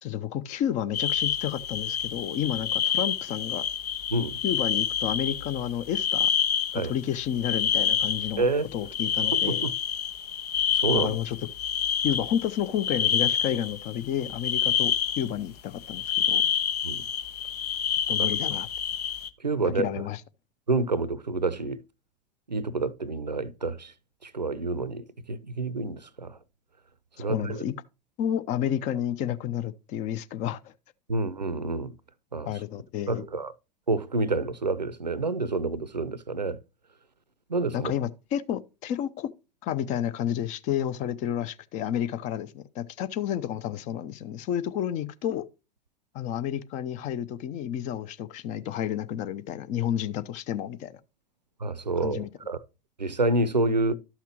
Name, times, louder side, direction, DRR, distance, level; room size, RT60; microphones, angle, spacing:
voice 1, 0.0-3.6 4.4-6.3 6.7-8.5 8.7-9.6 10.9-11.4 12.0-16.4 18.1-18.7 19.8-20.2 27.2-27.7 28.2-30.7 32.5-33.2 37.7-39.3 39.6-45.5 46.1-50.9 52.0-52.3, left 10 dB, 35° left, 0.7 m, -30 dB
sound 1, 0.9-8.4 8.7-15.3 15.8-19.3, left 8 dB, 70° left, 0.7 m, -28 dB
voice 2, 8.4-8.7 9.3-9.7 10.7-11.2 16.8-17.0 19.4-19.9 20.7-21.8 22.5-23.9 24.2-26.4 27.2-27.6 31.1-31.9 32.3-32.5 33.1-33.5 33.9-36.6 37.5-37.9 51.6-52.6 53.0-53.9, right 3 dB, 85° right, 0.6 m, -28 dB
12.5 x 5.8 x 2.9 m
figure-of-eight pair, 85°, 21 cm